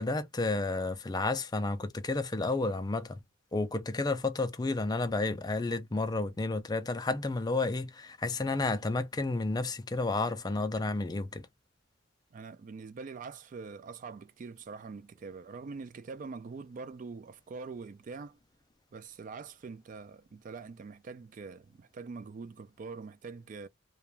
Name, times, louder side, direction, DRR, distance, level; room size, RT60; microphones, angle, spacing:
voice 1, 0.0-3.2 3.5-11.4, left 3 dB, 20° left, 0.4 m, -31 dB
voice 2, 12.3-18.4 18.9-23.7, right 4 dB, 45° right, 0.3 m, -44 dB
2.4 x 2.3 x 3.0 m
head